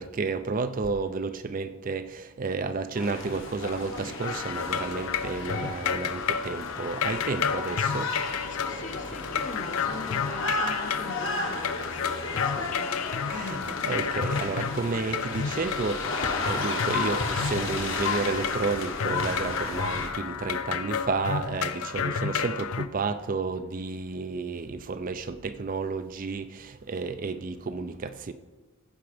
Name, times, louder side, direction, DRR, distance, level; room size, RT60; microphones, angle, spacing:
voice 1, 0.0-8.1 12.6-12.7 13.3-28.3, right 4 dB, 35° right, 0.4 m, -31 dB
sound 1, 3.0-20.1, left 3 dB, 60° left, 1.3 m, -33 dB
sound 2, 4.2-22.9, left 7 dB, 80° left, 0.5 m, -31 dB
voice 2, 8.5-14.0, left 3 dB, 35° left, 0.7 m, -42 dB
15.0 x 5.1 x 5.0 m
head